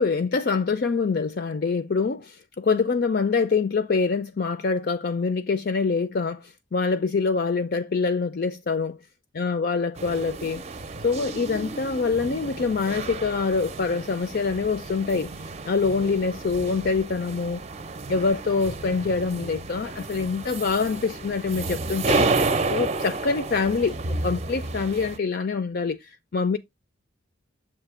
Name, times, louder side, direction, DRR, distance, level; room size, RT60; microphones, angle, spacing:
voice 1, 0.0-9.0 9.3-10.6 11.0-17.6 18.1-24.0 24.2-26.6, left 4 dB, 50° left, 0.4 m, -25 dB
sound 1, 10.0-25.2, right 3 dB, 35° right, 0.6 m, -31 dB
7.3 x 2.8 x 4.8 m
head